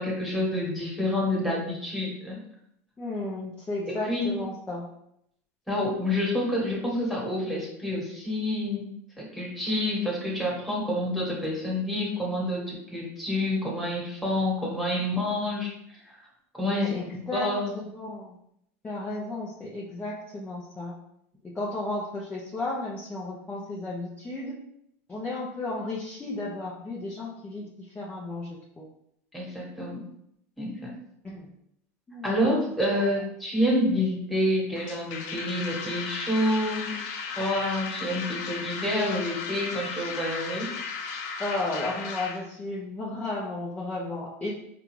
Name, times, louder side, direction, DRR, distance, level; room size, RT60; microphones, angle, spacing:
voice 1, 0.0-2.4 3.9-4.3 5.7-8.9 9.2-16.1 16.6-17.0 17.3-17.7 29.3-30.0 30.6-30.9 32.2-40.7, left 1 dB, ahead, -4 dB, 1.5 m, -28 dB
voice 2, 3.0-4.9 16.7-18.3 18.8-21.0 21.5-24.6 25.1-27.7 27.9-28.5 28.8-28.9 31.2-31.5 32.1-32.4 32.9-33.0 41.4-44.5, left 2 dB, 15° left, -6 dB, 0.8 m, -33 dB
sound 1, 34.8-42.4, left 5 dB, 65° left, 0.7 m, -35 dB
4.8 x 2.4 x 3.2 m, 0.75 s
supercardioid pair, 110°, 8 cm